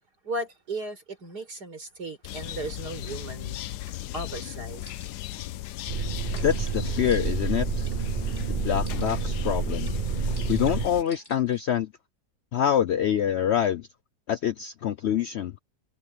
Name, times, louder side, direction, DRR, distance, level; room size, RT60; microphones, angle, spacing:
voice 1, 0.2-3.6 4.1-4.8, right 2 dB, 85° right, 5.5 m, -36 dB
sound 1, 2.2-11.0, left 14 dB, 85° left, 1.2 m, -36 dB
sound 2, 3.9-4.0 4.3-4.5 4.8-5.4 5.8-6.0 6.4-8.0 8.3-8.5 8.9-9.4 9.8-10.0 10.3-11.6, left 1 dB, 15° left, 3.7 m, -51 dB
sound 3, 5.9-10.9, right 6 dB, 40° right, 0.8 m, -29 dB
voice 2, 6.4-7.9 8.5-10.0 10.5-11.9 12.5-13.9 14.3-15.5, left 9 dB, 70° left, 0.6 m, -26 dB
omnidirectional pair, 1.7 m